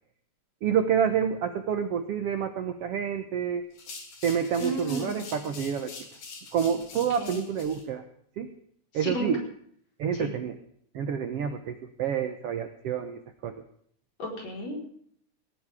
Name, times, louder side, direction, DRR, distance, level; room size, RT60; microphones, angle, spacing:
voice 1, 0.6-3.6 4.2-5.9 6.5-8.0 8.4-8.5 8.9-9.4 10.0-10.6 10.9-13.6, right 7 dB, 70° right, 7 dB, 1.4 m, -28 dB
sound 1, 3.7-7.8, left 4 dB, 75° left, 5.0 m, -44 dB
voice 2, 4.6-5.3 7.2-7.4 9.0-9.3 10.2-10.3 14.2-14.9, right 1 dB, 50° left, -1 dB, 5.6 m, -33 dB
18.0 x 17.5 x 3.6 m, 0.64 s
omnidirectional pair, 4.1 m